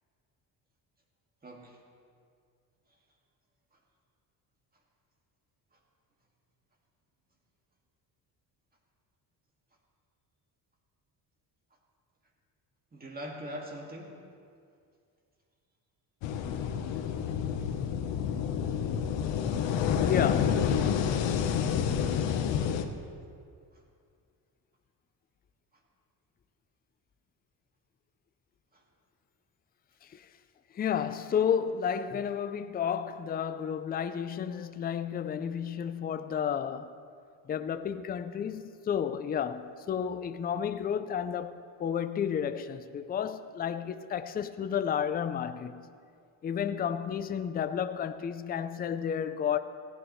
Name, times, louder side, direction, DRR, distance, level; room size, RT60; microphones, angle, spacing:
voice 1, 1.4-1.8 12.9-14.2 21.1-21.4 28.7-28.8, equal, 20° right, 2.0 m, -42 dB
sound 1, 16.2-22.8, left 8 dB, 90° left, 1.0 m, -29 dB
voice 2, 20.0-20.7 30.0-30.3 30.7-36.9 37.5-45.9 46.4-49.6, left 8 dB, 25° left, 0.4 m, -32 dB
17.0 x 16.0 x 3.1 m
cardioid pair, 140°, 43 cm